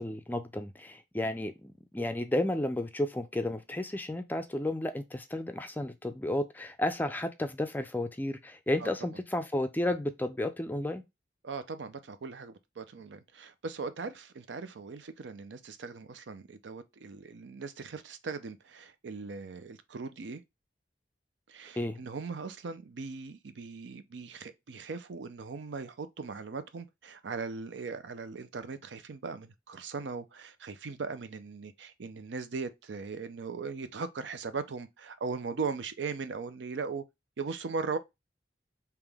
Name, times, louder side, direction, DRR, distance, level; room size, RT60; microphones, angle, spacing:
voice 1, 0.0-11.0 21.8-22.0, left 1 dB, 10° left, 0.4 m, -32 dB
voice 2, 11.4-20.4 21.5-37.0 37.4-38.0, right 4 dB, 85° right, 0.5 m, -39 dB
3.6 x 2.9 x 3.4 m
head